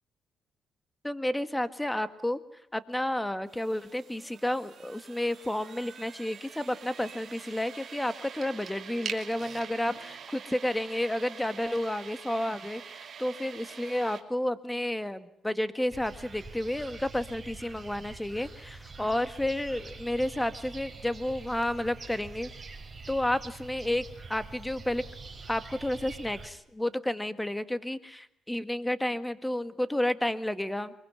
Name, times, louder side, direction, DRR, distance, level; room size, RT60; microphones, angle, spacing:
voice 1, 1.0-2.4 2.7-22.5 23.1-24.0 24.3-25.0 25.5-30.9, left 1 dB, 10° left, 12 dB, 1.7 m, -31 dB
sound 1, 3.5-14.2, right 7 dB, 50° right, 2.9 m, -45 dB
sound 2, 15.9-26.5, right 3 dB, 25° right, 5.1 m, -45 dB
24.0 x 22.5 x 9.7 m, 0.74 s
cardioid pair, 90°, 0 cm